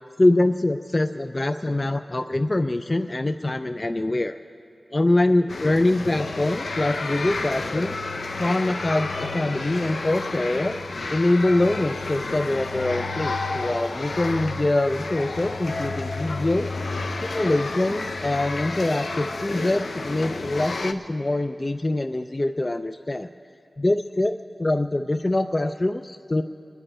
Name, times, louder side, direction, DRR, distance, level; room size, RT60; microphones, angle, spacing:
voice 1, 0.2-4.4 4.9-7.9 8.4-10.8 11.1-16.7 17.2-23.3 23.8-26.4, left 2 dB, 30° left, 9 dB, 0.4 m, -24 dB
sound 1, 5.5-20.9, left 3 dB, 75° left, 0.7 m, -31 dB
27.5 x 10.0 x 4.4 m, 2.7 s
wide cardioid pair, 60°, 0 cm